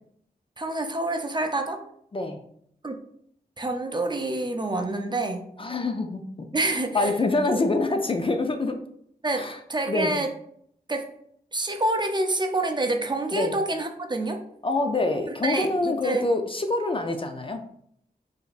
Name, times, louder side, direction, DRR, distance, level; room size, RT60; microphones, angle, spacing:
voice 1, 0.6-1.8 2.8-3.0 3.6-5.5 6.5-7.2 9.2-10.3 10.9-11.1 11.5-14.4 15.3-16.3, right 2 dB, 25° right, 5 dB, 0.5 m, -27 dB
voice 2, 5.6-8.8 9.3-9.6 9.9-10.1 13.3-13.5 14.6-17.7, left 2 dB, 35° left, 5 dB, 0.4 m, -26 dB
4.9 x 2.6 x 2.4 m, 0.68 s
cardioid pair, 65°, 16 cm